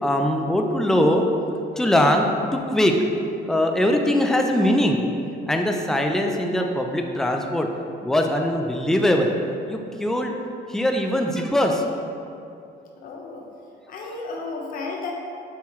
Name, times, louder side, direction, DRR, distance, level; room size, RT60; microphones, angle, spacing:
voice 1, 0.0-1.2 1.7-2.9 3.5-5.0 5.5-7.7 8.0-9.3 9.7-10.3 10.7-11.8 14.0-14.1, left 1 dB, 5° left, 2 dB, 0.5 m, -21 dB
voice 2, 13.0-13.4 13.9-15.1, left 3 dB, 55° left, 0 dB, 1.1 m, -33 dB
6.9 x 6.3 x 3.2 m, 2.6 s
cardioid pair, 110°, 17 cm